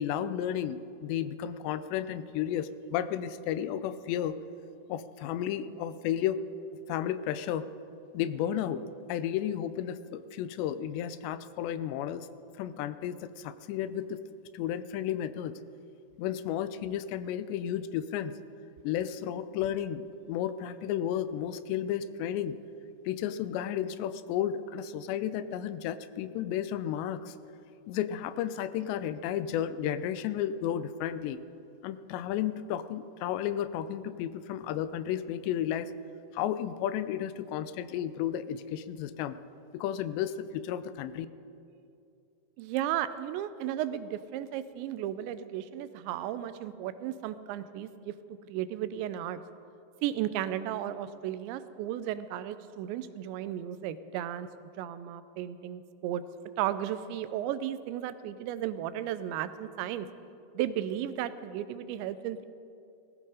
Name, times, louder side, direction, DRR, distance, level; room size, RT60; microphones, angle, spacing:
voice 1, 0.0-4.4 4.9-6.4 6.9-7.6 8.1-8.8 9.1-12.3 12.6-14.2 14.5-15.5 16.2-18.4 18.8-22.6 23.1-27.4 27.9-31.4 31.8-35.9 36.3-39.4 39.7-41.3, left 10 dB, 85° left, 13 dB, 2.8 m, -33 dB
voice 2, 42.6-48.1 48.5-49.4 50.0-54.5 54.8-56.2 56.6-60.1 60.5-62.5, right 11 dB, 90° right, 13 dB, 3.0 m, -34 dB
19.5 x 15.0 x 4.9 m, 2.6 s
omnidirectional pair, 5.0 m